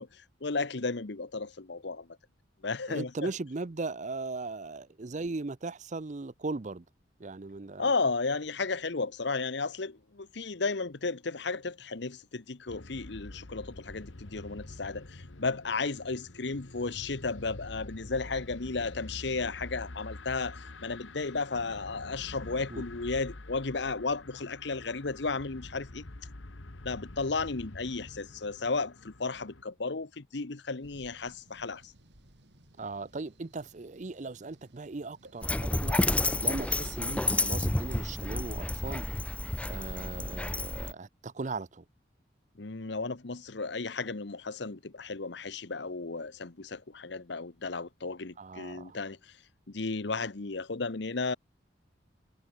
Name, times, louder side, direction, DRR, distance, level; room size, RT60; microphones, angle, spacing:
voice 1, 0.0-2.1 2.6-3.3 7.8-26.0 26.8-31.9 42.6-49.3 49.7-51.4, left 3 dB, 65° left, 1.0 m, -34 dB
voice 2, 2.9-6.8 7.2-7.9 22.7-22.8 32.8-36.0 36.4-39.1 39.7-41.8 48.4-49.0, right 3 dB, 40° right, 0.6 m, -38 dB
sound 1, 12.7-29.6, left 2 dB, 80° left, 1.7 m, -46 dB
sound 2, 30.8-40.1, right 1 dB, 60° right, 3.3 m, -60 dB
Dog, 35.4-40.9, left 2 dB, 5° left, 0.5 m, -30 dB
head